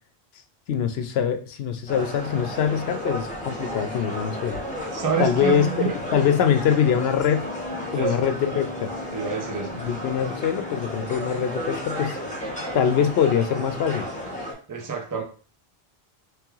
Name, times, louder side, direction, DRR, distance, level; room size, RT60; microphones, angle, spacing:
voice 1, 0.7-4.6 5.2-5.7 6.1-7.5 7.9-8.9 9.8-12.2 12.7-14.1, left 8 dB, 80° left, 9 dB, 0.8 m, -23 dB
sound 1, 1.9-14.5, equal, 10° left, 1.0 m, -33 dB
voice 2, 4.9-6.0 7.9-8.2 9.1-9.8 14.7-15.2, right 7 dB, 25° right, 3 dB, 0.6 m, -28 dB
Wind instrument woodwind instrument, 6.6-12.0, left 4 dB, 40° left, 0.8 m, -41 dB
3.3 x 3.1 x 3.5 m, 0.40 s
omnidirectional pair, 1.0 m